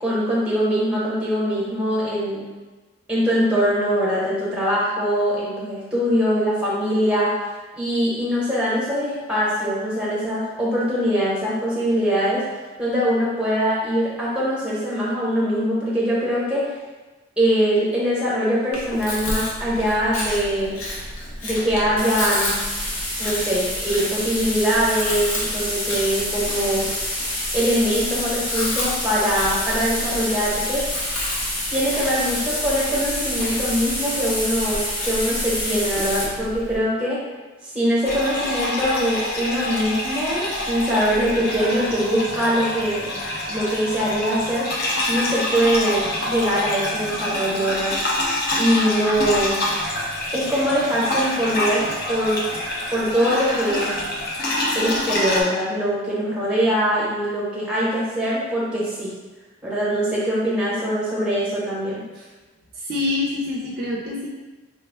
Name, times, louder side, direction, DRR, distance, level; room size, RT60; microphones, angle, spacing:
voice 1, 0.0-2.4 3.1-7.4 7.8-12.4 12.8-16.7 17.4-20.8 21.4-22.5 23.2-26.8 27.5-30.8 31.7-37.2 37.6-43.1 43.5-44.7 45.1-48.0 48.5-49.6 50.3-52.4 52.9-53.9 54.7-59.1 59.6-62.0, equal, 5° right, -7 dB, 0.8 m, -22 dB
Chewing mastication, 18.7-36.8, left 1 dB, 90° left, 0.9 m, -32 dB
sound 1, 22.0-36.2, left 1 dB, 70° left, 1.2 m, -28 dB
sound 2, 38.0-55.4, left 1 dB, 45° left, 0.5 m, -26 dB
voice 2, 62.7-64.3, left 2 dB, 45° right, -3 dB, 0.4 m, -26 dB
3.5 x 2.2 x 3.3 m, 1.2 s
head